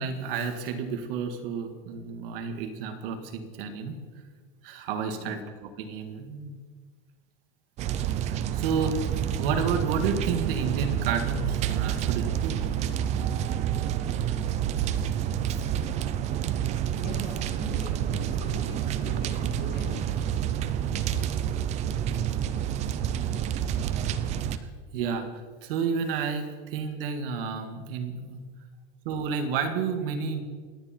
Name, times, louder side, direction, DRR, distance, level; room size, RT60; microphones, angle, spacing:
voice 1, 0.0-4.0 4.6-6.6 8.2-9.0 9.4-12.6 13.1-14.4 15.5-15.6 24.6-28.4 29.1-30.4, right 5 dB, 55° right, 6 dB, 2.0 m, -31 dB
sound 1, 7.8-24.6, right 10 dB, 20° right, 0.5 m, -28 dB
voice 2, 16.9-20.7, left 4 dB, 30° left, 1 dB, 3.3 m, -43 dB
27.5 x 10.0 x 4.5 m, 1.5 s
supercardioid pair, 160°, 33 cm